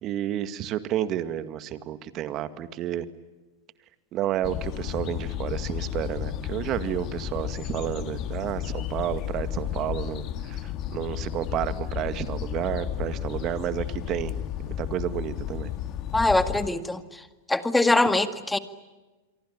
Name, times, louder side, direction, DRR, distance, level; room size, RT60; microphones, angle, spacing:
voice 1, 0.0-3.1 4.1-14.3 14.7-15.7, right 11 dB, 40° right, 11 dB, 2.0 m, -31 dB
sound 1, 4.4-16.7, left 11 dB, 40° left, 2.0 m, -33 dB
voice 2, 16.1-17.2 17.5-18.6, left 2 dB, 5° left, 10 dB, 1.9 m, -23 dB
28.0 x 23.5 x 8.8 m, 1.2 s
hypercardioid pair, 105°, 0 cm